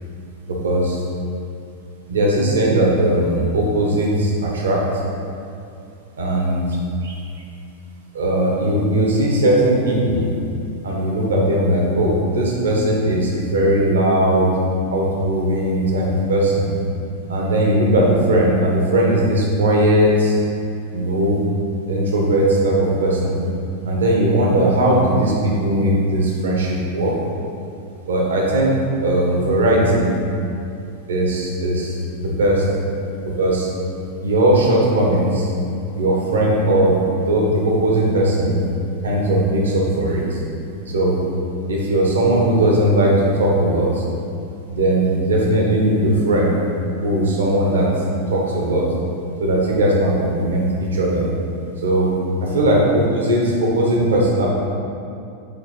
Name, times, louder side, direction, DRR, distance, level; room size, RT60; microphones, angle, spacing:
voice 1, 0.5-1.0 2.1-4.8 6.2-6.6 7.0-7.1 8.1-10.3 10.8-14.5 14.9-16.7 17.3-20.4 20.9-21.4 21.9-23.4 23.8-27.1 28.1-28.7 29.0-30.2 31.1-32.6 33.4-33.7 34.2-35.5 35.9-37.0 37.2-38.6 39.0-40.4 40.9-41.2 41.7-43.1 43.4-44.0 44.7-46.6 47.0-47.9 48.3-48.8 49.4-50.6 50.9-51.2 51.8-52.1 52.5-54.5, right 1 dB, 65° right, -3 dB, 1.3 m, -18 dB
7.8 x 3.5 x 5.1 m, 2.5 s
figure-of-eight pair, 90°, 0 cm